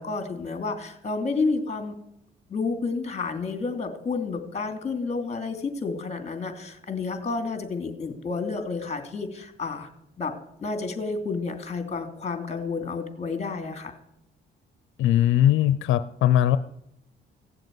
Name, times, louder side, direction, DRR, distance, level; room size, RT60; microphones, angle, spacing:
voice 1, 0.0-1.9 2.5-9.9 10.2-13.9, left 4 dB, 35° left, 7 dB, 2.9 m, -30 dB
voice 2, 15.0-16.6, left 11 dB, 80° left, 13 dB, 0.6 m, -20 dB
16.5 x 7.8 x 9.4 m, 0.79 s
cardioid pair, 90°, 20 cm